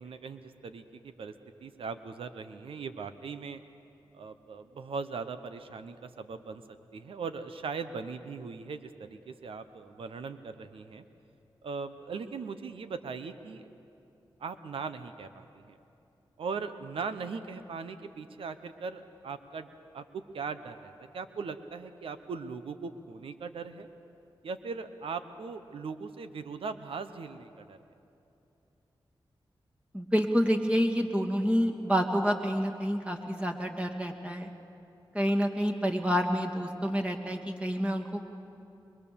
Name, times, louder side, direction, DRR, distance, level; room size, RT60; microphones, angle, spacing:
voice 1, 0.0-1.3 1.6-3.6 4.1-6.6 6.9-11.0 11.6-13.7 14.4-15.7 16.4-19.7 19.9-23.9 24.4-27.8, right 5 dB, 90° right, 10 dB, 1.0 m, -39 dB
voice 2, 29.9-34.5 35.1-38.4, equal, 15° right, 1 dB, 2.5 m, -28 dB
23.0 x 22.5 x 7.0 m, 2.8 s
cardioid pair, 55°, 9 cm